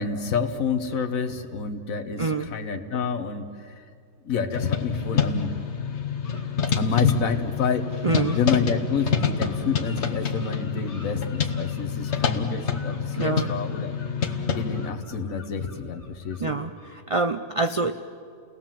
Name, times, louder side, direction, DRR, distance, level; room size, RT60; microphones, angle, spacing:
voice 1, 0.0-3.9 4.2-5.5 6.8-8.0 8.3-13.9 14.5-16.6, left 5 dB, 70° left, 7 dB, 1.6 m, -28 dB
sound 1, 0.8-1.2 2.1-2.4 5.3-5.5 6.2-7.3 7.9-8.5 8.8-17.3, left 2 dB, 40° left, 3.0 m, -51 dB
voice 2, 2.2-2.5 8.0-8.4 13.1-13.5 16.4-17.9, right 3 dB, 50° right, 8 dB, 0.4 m, -26 dB
sound 2, 4.5-14.9, left 6 dB, 55° left, 1.4 m, -27 dB
30.0 x 19.0 x 7.5 m, 2.3 s
omnidirectional pair, 1.5 m